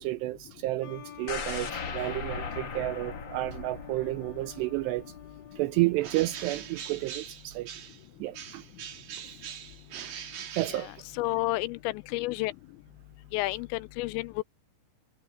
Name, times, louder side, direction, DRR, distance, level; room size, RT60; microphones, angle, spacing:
voice 1, 0.0-5.1 5.5-7.7 8.2-8.6 10.5-10.9, right 19 dB, 90° right, 2.4 m, -31 dB
sound 1, 0.8-7.1, left 8 dB, 45° left, 3.1 m, -49 dB
sound 2, 1.3-5.3 5.6-5.7, left 5 dB, 65° left, 1.2 m, -38 dB
Bird, 6.0-8.1 8.3-11.4, right 9 dB, 55° right, 3.3 m, -42 dB
voice 2, 10.7-12.5 13.3-14.4, left 20 dB, 85° left, 2.7 m, -31 dB
omnidirectional pair, 5.5 m